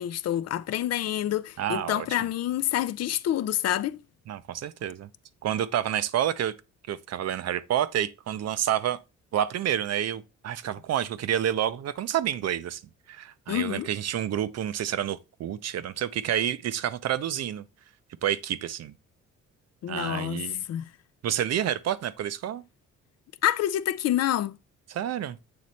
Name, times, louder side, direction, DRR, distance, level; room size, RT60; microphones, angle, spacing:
voice 1, 0.0-4.0 13.5-13.9 19.8-20.4 20.7-20.9 23.4-24.6, left 12 dB, 55° left, 0.5 m, -27 dB
voice 2, 1.6-2.1 4.3-5.1 5.4-6.5 6.9-9.0 9.3-12.8 13.1-17.7 18.2-18.9 19.9-20.6 21.2-22.6 24.9-25.4, right 10 dB, 60° right, 0.6 m, -29 dB
7.7 x 3.1 x 4.0 m
cardioid pair, 90°, 30 cm